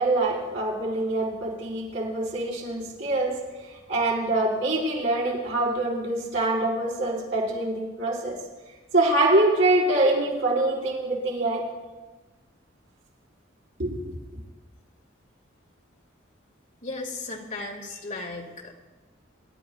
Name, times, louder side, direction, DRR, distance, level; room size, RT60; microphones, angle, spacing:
voice 1, 0.0-3.4 3.9-8.3 8.9-11.7 13.8-14.1, right 2 dB, 70° right, -4 dB, 4.6 m, -24 dB
voice 2, 16.8-18.7, left 2 dB, 40° left, 0 dB, 2.0 m, -35 dB
26.0 x 12.5 x 2.4 m, 1.2 s
head